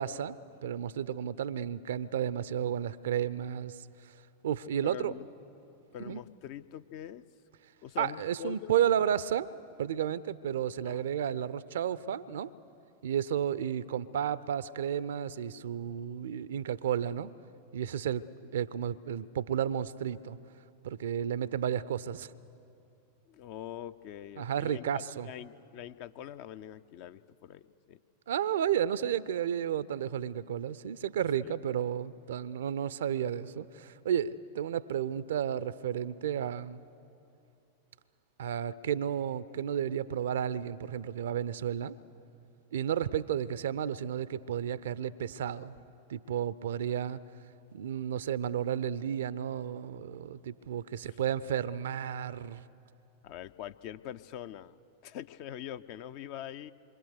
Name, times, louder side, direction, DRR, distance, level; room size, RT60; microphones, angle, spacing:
voice 1, 0.0-3.8 4.4-5.1 6.0-6.2 8.0-9.5 9.8-12.5 13.0-17.3 17.7-18.3 18.5-20.4 20.8-22.3 24.4-25.3 28.3-36.8 38.4-41.9 42.7-45.7 46.1-47.2 47.7-52.6, right 9 dB, 60° right, 18 dB, 0.6 m, -32 dB
voice 2, 4.8-5.3 5.9-7.2 7.8-8.8 10.8-11.1 23.3-24.8 25.2-28.0 31.4-31.6 51.0-51.2 53.2-54.8 55.0-56.7, left 11 dB, 45° left, 12 dB, 0.6 m, -43 dB
27.0 x 24.0 x 6.7 m, 2.6 s
figure-of-eight pair, 90°, 0 cm